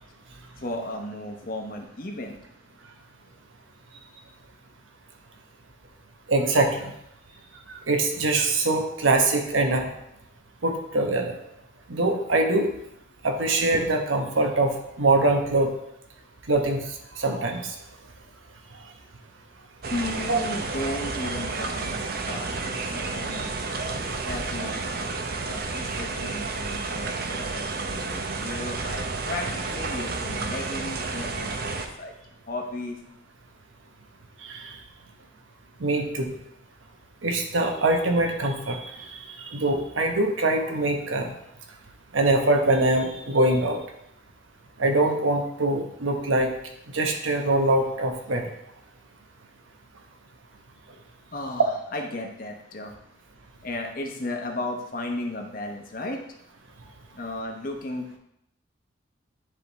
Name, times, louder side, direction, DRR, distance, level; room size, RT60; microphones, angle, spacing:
voice 1, 0.6-2.4 19.9-23.6 24.3-32.1 32.5-33.0 51.3-53.0 53.6-56.2 57.1-58.2, left 2 dB, 45° left, 3 dB, 1.0 m, -35 dB
voice 2, 6.3-6.9 7.7-9.9 10.6-11.3 11.9-12.7 13.2-15.7 16.5-16.8 17.2-17.7 20.3-20.4 34.4-34.7 35.8-36.3 37.2-39.0 39.4-41.3 42.1-43.8 44.8-46.5 46.9-48.5, right 2 dB, 90° right, 3 dB, 1.1 m, -23 dB
sound 1, 19.8-31.9, right 3 dB, 50° right, 0.6 m, -31 dB
9.9 x 3.7 x 4.1 m, 0.78 s
head